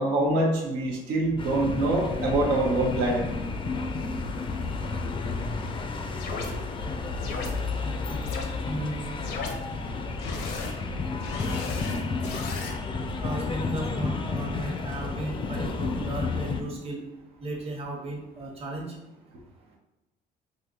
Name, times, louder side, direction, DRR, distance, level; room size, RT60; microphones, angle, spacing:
voice 1, 0.0-3.2, right 2 dB, 90° right, -1 dB, 0.7 m, -25 dB
sound 1, 1.4-16.6, left 3 dB, 30° left, 0.4 m, -31 dB
sound 2, 6.2-6.5 7.2-7.5 8.2-8.4 9.2-9.5 10.2-10.7 11.2-12.7, left 4 dB, 70° left, 0.6 m, -35 dB
voice 2, 8.6-9.2 13.2-17.0 17.4-18.9, right 2 dB, 35° right, -1 dB, 0.9 m, -35 dB
3.8 x 2.6 x 2.9 m, 0.97 s
cardioid pair, 110°, 17 cm